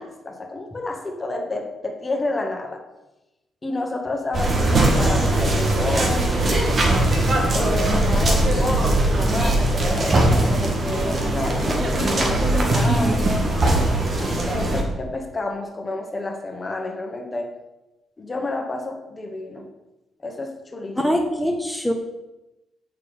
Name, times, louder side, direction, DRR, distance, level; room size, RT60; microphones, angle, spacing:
voice 1, 0.0-2.8 3.6-6.8 7.5-13.5 14.2-17.5 18.2-19.7 20.2-21.1, left 2 dB, 30° left, 2 dB, 1.8 m, -30 dB
sound 1, 4.3-14.8, right 1 dB, 45° right, 2.2 m, -20 dB
sound 2, 12.6-13.1, right 3 dB, 30° right, 1.0 m, -29 dB
voice 2, 21.0-21.9, equal, 5° left, 1 dB, 1.6 m, -23 dB
7.1 x 6.7 x 5.4 m, 0.99 s
hypercardioid pair, 40°, 0 cm